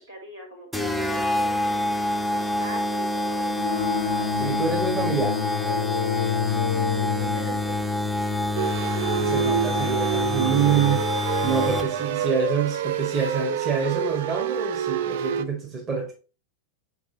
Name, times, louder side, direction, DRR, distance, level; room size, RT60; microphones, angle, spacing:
voice 1, 0.0-3.8 6.5-7.8 10.6-10.9 11.6-11.9, right 2 dB, 75° right, 2.1 m, -41 dB
sound 1, 0.7-12.1, left 1 dB, ahead, 0.6 m, -27 dB
sound 2, 3.5-11.6, left 8 dB, 65° left, 0.4 m, -31 dB
voice 2, 4.3-5.4 9.0-11.0 11.4-16.1, right 6 dB, 30° right, 1.6 m, -26 dB
sound 3, 8.6-15.5, right 9 dB, 55° right, 0.4 m, -27 dB
7.1 x 4.8 x 2.8 m
figure-of-eight pair, 90°, 0 cm